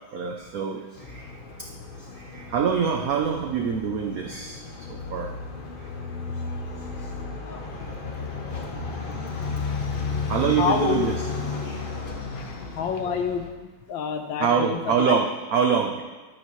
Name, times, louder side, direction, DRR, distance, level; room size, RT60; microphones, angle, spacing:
voice 1, 0.1-1.3 2.2-4.6 4.9-5.3 10.3-11.3 11.6-11.8 14.4-16.0, right 6 dB, 70° right, 2 dB, 0.8 m, -25 dB
sound 1, 1.0-13.5, left 4 dB, 55° left, 0.5 m, -33 dB
voice 2, 10.6-11.1 12.3-13.4 13.9-15.2, left 6 dB, 75° left, 6 dB, 1.5 m, -27 dB
11.5 x 9.0 x 3.1 m, 1.2 s
omnidirectional pair, 2.2 m